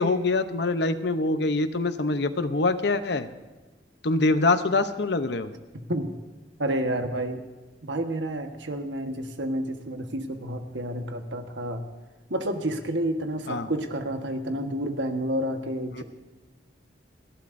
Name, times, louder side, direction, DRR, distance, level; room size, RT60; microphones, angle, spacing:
voice 1, 0.0-3.3 4.0-5.5 13.5-13.7 15.9-16.0, left 3 dB, 60° left, 10 dB, 0.8 m, -24 dB
voice 2, 6.6-7.4 7.8-11.8 12.3-16.0, right 1 dB, 75° right, 5 dB, 1.4 m, -30 dB
30.0 x 12.0 x 2.7 m, 1.2 s
head